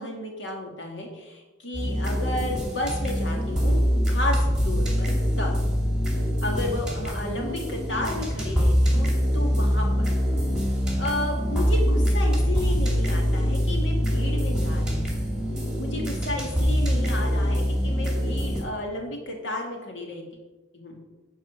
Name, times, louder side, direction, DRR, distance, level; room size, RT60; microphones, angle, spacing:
voice 1, 0.0-3.8 4.1-5.6 6.4-10.1 11.0-15.1 15.8-20.2 20.7-21.0, left 1 dB, 65° left, 0 dB, 2.6 m, -32 dB
sound 1, 1.7-18.6, equal, 5° right, 2.4 m, -24 dB
10.5 x 4.9 x 7.4 m, 1.2 s
head